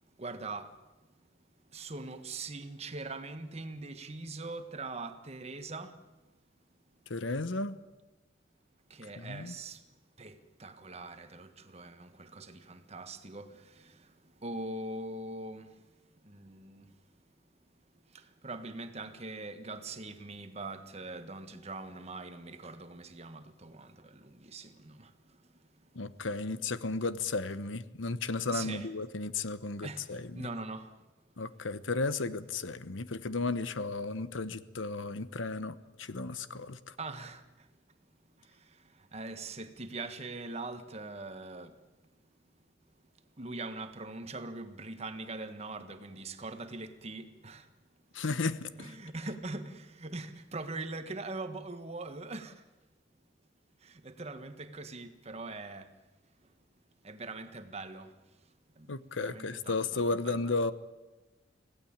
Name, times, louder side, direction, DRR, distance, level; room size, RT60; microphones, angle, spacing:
voice 1, 0.2-0.7 1.7-5.9 8.9-9.8 10.2-13.9 14.4-15.7 16.2-16.8 18.4-25.1 28.5-28.9 29.8-30.0 30.3-30.9 37.0-37.4 39.1-41.7 43.4-47.6 48.8-52.5 53.8-55.9 57.0-58.1 58.8-58.9 59.2-60.5, right 3 dB, 35° right, 1.5 m, -42 dB
voice 2, 7.1-7.8 9.2-9.5 25.9-30.5 31.4-36.9 48.1-48.7 58.9-60.7, left 3 dB, 90° left, 1.0 m, -34 dB
25.0 x 17.0 x 8.9 m
head